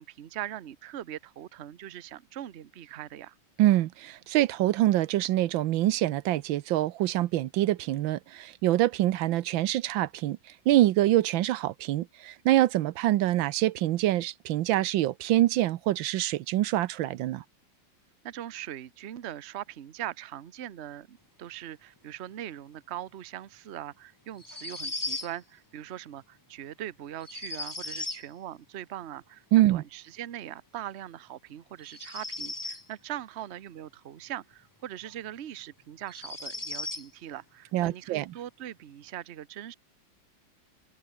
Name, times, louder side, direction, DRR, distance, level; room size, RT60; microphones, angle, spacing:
voice 1, 0.0-3.3 18.2-39.7, right 12 dB, 45° right, 0.9 m, -41 dB
voice 2, 3.6-10.4 10.7-17.4 29.5-29.8 37.7-38.2, right 14 dB, 90° right, 1.5 m, -25 dB
sound 1, 24.4-25.3 27.2-28.3 31.8-32.9 35.0-35.1 36.1-37.1, left 2 dB, 15° left, 0.8 m, -36 dB
open air
omnidirectional pair, 2.1 m